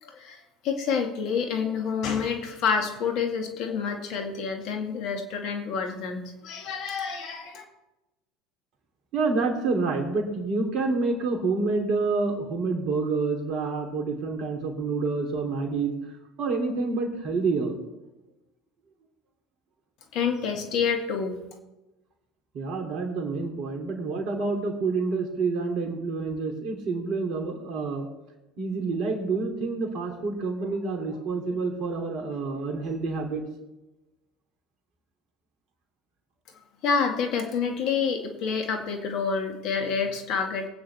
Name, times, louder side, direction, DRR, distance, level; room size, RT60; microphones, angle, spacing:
voice 1, 0.0-7.6 20.1-21.4 36.8-40.7, left 6 dB, 55° left, 4 dB, 2.0 m, -28 dB
voice 2, 9.1-15.9 16.4-17.8 22.5-28.1 28.6-33.4, right 3 dB, 50° right, 3 dB, 2.9 m, -28 dB
22.5 x 8.9 x 3.4 m, 1.0 s
hypercardioid pair, 70°, 0 cm